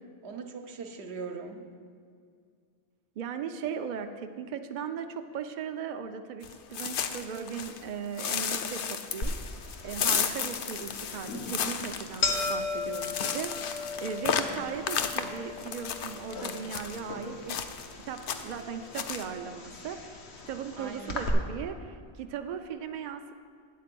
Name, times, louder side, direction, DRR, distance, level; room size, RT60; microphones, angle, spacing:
voice 1, 0.2-1.7 14.3-14.7 20.7-21.2, right 4 dB, 80° right, 5 dB, 1.0 m, -41 dB
voice 2, 3.2-9.3 9.8-17.6 17.9-20.2 20.5-23.3, right 7 dB, 55° right, 7 dB, 0.5 m, -38 dB
sound 1, 6.4-7.8 8.2-17.0 17.5-17.9 18.2-18.6 18.9-19.2, left 7 dB, 65° left, 0.7 m, -33 dB
sound 2, 9.2-21.3, left 3 dB, 80° left, 1.1 m, -37 dB
9.2 x 4.3 x 7.5 m, 2.2 s
omnidirectional pair, 1.1 m